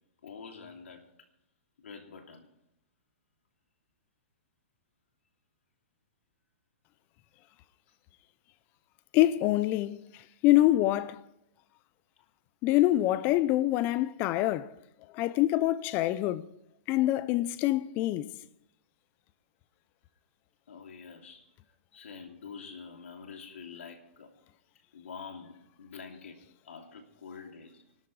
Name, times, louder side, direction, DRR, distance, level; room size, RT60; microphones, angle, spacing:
voice 1, 0.2-1.1 1.8-2.5 20.7-21.5 21.9-24.3 24.9-26.4 26.6-27.8, left 5 dB, 90° left, 2.8 m, -46 dB
voice 2, 9.1-10.0 10.4-11.2 12.6-14.7 15.1-16.4 16.9-18.3, left 15 dB, 30° left, 0.6 m, -25 dB
25.5 x 13.0 x 3.3 m
hypercardioid pair, 150°, 7 cm